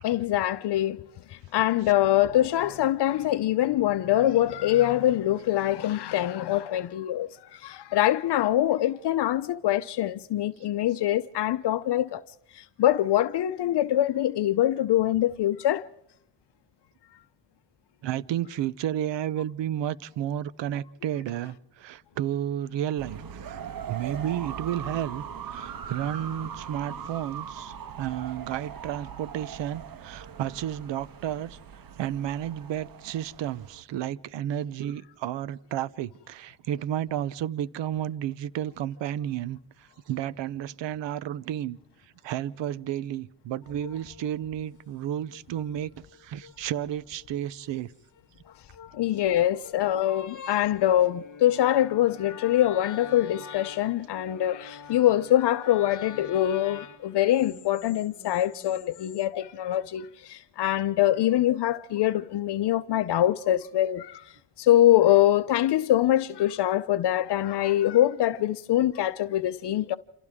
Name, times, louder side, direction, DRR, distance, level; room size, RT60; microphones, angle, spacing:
voice 1, 0.0-1.0 1.3-12.2 12.5-15.9 48.9-70.0, left 13 dB, 70° left, 0.7 m, -24 dB
voice 2, 18.0-23.6 23.9-41.8 42.2-47.9, right 11 dB, 80° right, 0.9 m, -32 dB
sound 1, 23.0-33.8, right 8 dB, 55° right, 1.3 m, -40 dB
sound 2, 43.6-59.3, left 7 dB, 45° left, 1.5 m, -46 dB
28.5 x 28.0 x 3.7 m
cardioid pair, 100°, 43 cm